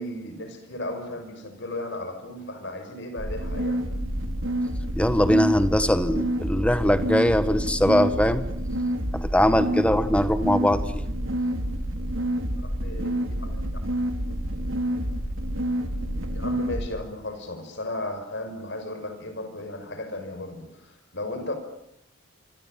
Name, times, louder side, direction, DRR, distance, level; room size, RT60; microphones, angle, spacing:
voice 1, 0.0-3.8 12.6-13.8 16.3-21.6, left 1 dB, 55° left, 8 dB, 6.0 m, -35 dB
sound 1, 3.2-16.9, right 1 dB, 70° right, 3.4 m, -28 dB
voice 2, 5.0-8.4 9.2-11.0, equal, 5° left, 11 dB, 1.5 m, -21 dB
28.0 x 25.5 x 7.6 m, 0.75 s
head